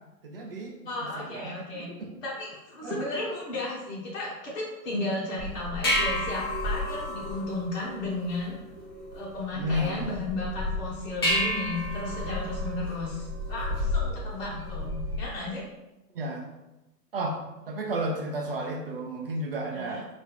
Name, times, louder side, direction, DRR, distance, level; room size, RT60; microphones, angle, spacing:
voice 1, 0.2-0.8 1.2-2.2 2.8-3.0 9.5-10.2 14.5-14.9 16.1-16.5 17.1-20.1, right 1 dB, 35° right, 1 dB, 0.5 m, -33 dB
voice 2, 0.8-1.9 2.2-8.6 9.1-15.7 19.7-20.0, left 2 dB, 50° left, -7 dB, 1.4 m, -34 dB
sound 1, 5.4-15.4, left 1 dB, 15° left, 0.4 m, -31 dB
4.4 x 2.8 x 3.4 m, 1.0 s
hypercardioid pair, 130°, 49 cm